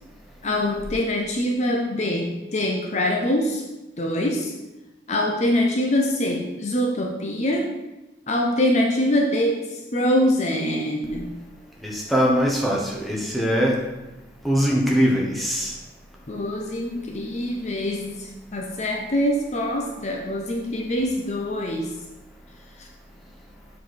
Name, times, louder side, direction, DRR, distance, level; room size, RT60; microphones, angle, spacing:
voice 1, 0.4-3.6 4.0-4.5 5.1-7.7 8.3-11.3 16.3-21.9 22.8-22.9, left 1 dB, 35° left, 1 dB, 0.6 m, -24 dB
voice 2, 11.8-13.8 14.4-15.7, equal, ahead, -3 dB, 1.0 m, -21 dB
7.1 x 4.8 x 4.2 m, 1.0 s
head